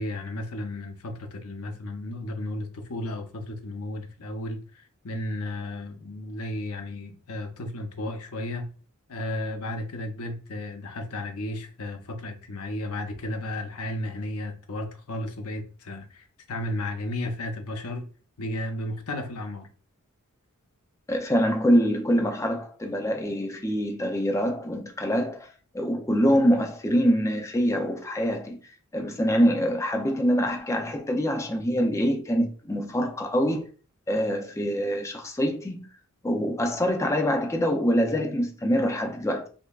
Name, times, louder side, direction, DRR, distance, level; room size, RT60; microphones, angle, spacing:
voice 1, 0.0-4.6 5.0-8.7 9.1-18.1 18.4-19.7, left 1 dB, 80° left, 0.7 m, -33 dB
voice 2, 21.1-25.5 25.7-28.6 28.9-33.7 34.1-35.9 36.2-39.5, equal, 15° left, 0.4 m, -25 dB
5.2 x 2.1 x 2.3 m
head